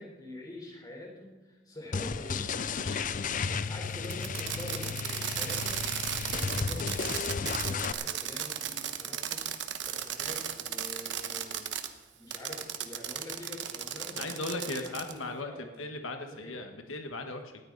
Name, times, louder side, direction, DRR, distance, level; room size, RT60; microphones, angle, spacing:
voice 1, 0.0-2.5 3.4-16.6, left 1 dB, 20° left, -1 dB, 4.3 m, -46 dB
sound 1, 1.9-7.9, left 5 dB, 40° left, 0.5 m, -33 dB
voice 2, 2.8-3.1 14.2-17.6, left 2 dB, 90° left, 5 dB, 1.5 m, -38 dB
Fireworks, 4.0-11.9 12.3-15.2, right 10 dB, 60° right, 1.2 m, -35 dB
19.0 x 14.0 x 4.1 m, 1.2 s
head